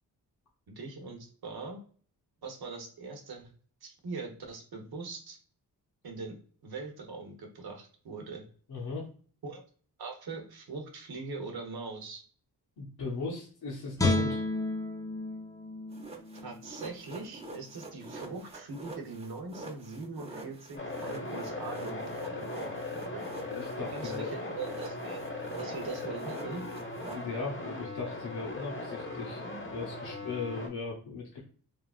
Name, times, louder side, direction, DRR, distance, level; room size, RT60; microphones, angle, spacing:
voice 1, 0.7-1.8 2.4-3.5 3.8-5.4 6.0-6.4 6.6-8.4 9.4-9.6 10.0-12.2 16.4-23.2 23.9-25.2 25.6-26.6, right 4 dB, 65° right, 2 dB, 1.0 m, -41 dB
voice 2, 8.7-9.1 12.8-14.4 23.5-24.3 27.1-31.4, left 4 dB, 65° left, -4 dB, 0.9 m, -38 dB
Guitar, 14.0-17.1 17.5-17.7, left 2 dB, 10° left, 0.5 m, -32 dB
sound 1, 15.9-24.3 24.6-27.2, right 2 dB, 15° right, 0.8 m, -46 dB
sound 2, 20.8-30.7, left 2 dB, 30° left, 0.9 m, -39 dB
3.4 x 2.4 x 2.4 m, 0.43 s
cardioid pair, 75°, 40 cm